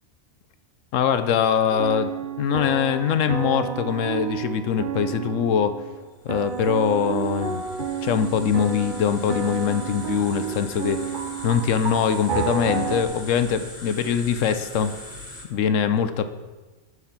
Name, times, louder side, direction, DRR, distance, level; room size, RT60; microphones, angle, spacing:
voice 1, 0.9-2.1 2.4-5.8 6.2-7.6 8.0-11.0 11.4-14.9 15.5-16.3, left 8 dB, 85° left, 11 dB, 1.1 m, -23 dB
sound 1, 1.7-6.0 6.3-13.0, right 7 dB, 45° right, 0.9 m, -30 dB
sound 2, 6.3-15.4, left 1 dB, 35° left, 2.2 m, -41 dB
14.0 x 4.8 x 5.9 m, 1.2 s
omnidirectional pair, 1.3 m